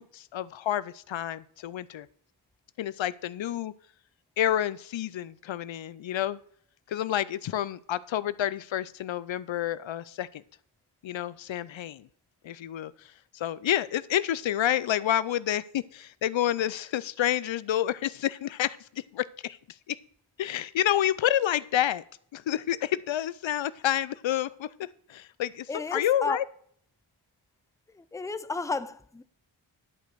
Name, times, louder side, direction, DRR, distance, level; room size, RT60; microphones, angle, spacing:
voice 1, 0.0-2.1 2.8-3.7 4.4-6.4 6.9-10.4 11.0-12.1 12.4-12.9 13.3-18.8 19.1-19.6 19.9-20.0 20.4-22.0 22.3-24.7 25.1-26.4, left 11 dB, 70° left, 0.5 m, -29 dB
voice 2, 25.7-26.4 27.9-29.2, left 3 dB, 5° left, 0.5 m, -32 dB
11.0 x 5.2 x 6.1 m
cardioid pair, 55°, 47 cm